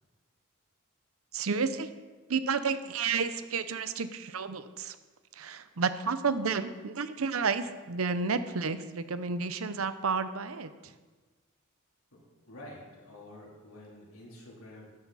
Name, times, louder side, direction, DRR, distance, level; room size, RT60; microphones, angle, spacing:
voice 1, 1.3-1.9 2.3-5.0 5.4-10.9, right 5 dB, 85° right, 12 dB, 0.7 m, -31 dB
voice 2, 12.1-14.9, left 1 dB, 85° left, -4 dB, 3.6 m, -49 dB
13.0 x 10.5 x 4.2 m, 1.3 s
head